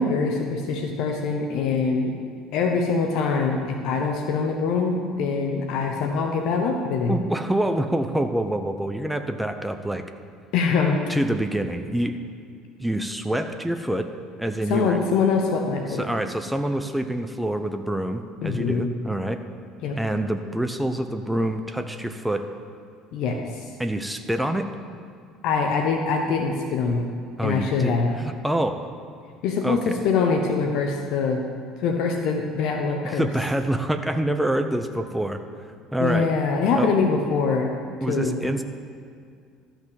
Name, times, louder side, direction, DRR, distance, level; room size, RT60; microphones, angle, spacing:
voice 1, 0.0-2.1 2.5-7.2 10.5-11.0 14.7-16.1 18.4-18.9 19.8-20.0 23.1-23.4 25.4-27.0 27.4-28.2 29.4-31.4 31.8-33.3 36.0-37.7 38.1-38.5, left 4 dB, 55° left, 3 dB, 0.9 m, -23 dB
voice 2, 7.1-10.0 11.1-12.2 12.8-14.1 14.4-15.0 16.0-19.4 20.0-22.5 23.8-24.7 27.4-28.9 29.6-29.9 33.0-35.4 35.9-36.3 36.8-36.9 38.0-38.6, right 1 dB, 5° right, 7 dB, 0.7 m, -26 dB
13.0 x 6.0 x 7.0 m, 2.2 s
figure-of-eight pair, 60°, 0 cm